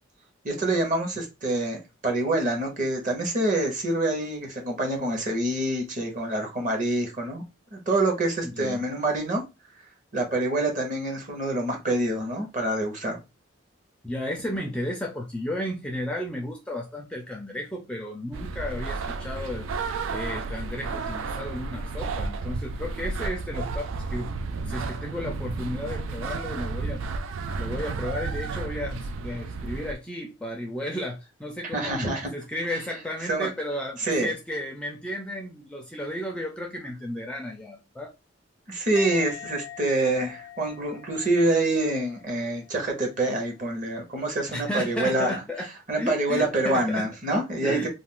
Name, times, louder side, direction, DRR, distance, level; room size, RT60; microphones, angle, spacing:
voice 1, 0.4-7.4 7.7-9.4 10.1-13.2 31.7-32.3 33.3-33.5 34.0-34.3 38.7-45.4 45.9-47.9, right 2 dB, 40° right, 0.8 m, -26 dB
voice 2, 8.5-8.9 14.0-19.7 20.1-24.3 24.7-27.0 27.6-38.1 44.5-45.7 46.0-47.1 47.6-47.9, left 1 dB, 5° left, 0.4 m, -33 dB
sound 1, 18.3-29.9, right 4 dB, 80° right, 0.3 m, -32 dB
Musical instrument, 38.9-42.3 42.6-43.0, left 10 dB, 90° left, 0.6 m, -43 dB
2.4 x 2.4 x 3.6 m
head